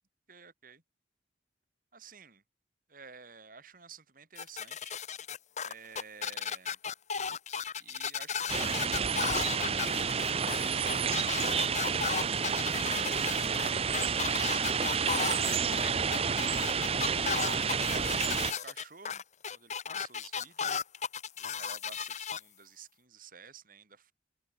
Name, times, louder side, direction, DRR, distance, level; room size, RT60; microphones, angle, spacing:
voice 1, 0.3-0.8 1.9-2.4 2.9-5.0 5.6-6.8 7.8-9.1 12.8-19.2 19.5-20.8 21.4-24.1, right 5 dB, 50° right, 4.8 m, -52 dB
sound 1, 4.4-22.4, left 6 dB, 40° left, 1.6 m, -35 dB
sound 2, 8.5-18.5, right 6 dB, 35° right, 0.8 m, -30 dB
head